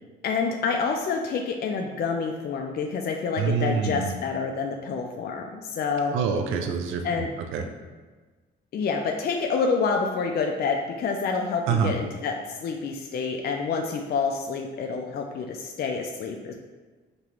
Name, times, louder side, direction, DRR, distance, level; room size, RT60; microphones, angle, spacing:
voice 1, 0.2-6.2 7.0-7.3 8.7-12.3 12.6-16.5, left 5 dB, 50° left, 2 dB, 0.4 m, -28 dB
voice 2, 3.4-4.1 6.1-7.7 11.7-12.0, right 6 dB, 85° right, 5 dB, 0.5 m, -26 dB
5.3 x 2.9 x 3.0 m, 1.3 s
cardioid pair, 90°, 20 cm